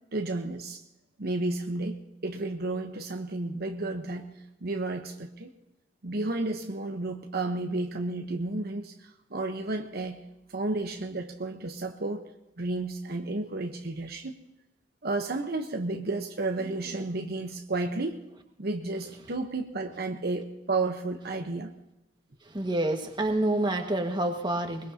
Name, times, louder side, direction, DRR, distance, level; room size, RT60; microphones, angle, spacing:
voice 1, 0.1-0.8 1.2-4.3 4.6-5.5 6.0-10.2 10.5-12.2 12.6-14.4 15.0-18.2 18.6-21.7, right 2 dB, 60° right, 4 dB, 1.0 m, -32 dB
voice 2, 22.4-24.9, right 1 dB, 25° right, 3 dB, 1.6 m, -28 dB
21.5 x 21.5 x 2.8 m, 0.96 s
head